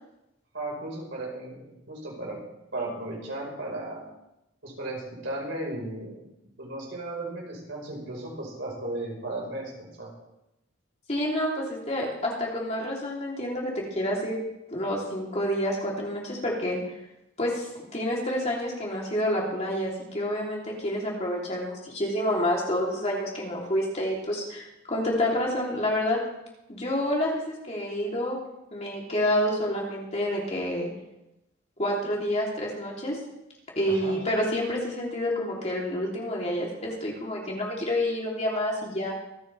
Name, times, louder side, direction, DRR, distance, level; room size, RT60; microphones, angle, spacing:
voice 1, 0.5-2.4 2.7-4.0 4.6-6.2 6.6-10.1 33.9-34.2, right 2 dB, 60° right, -2 dB, 4.9 m, -35 dB
voice 2, 11.1-14.4 14.7-16.8 17.4-17.7 17.9-26.2 26.7-28.4 28.7-30.9 31.8-33.2 33.7-39.1, left 1 dB, 35° left, -3 dB, 3.4 m, -28 dB
26.0 x 9.6 x 3.5 m, 0.88 s
head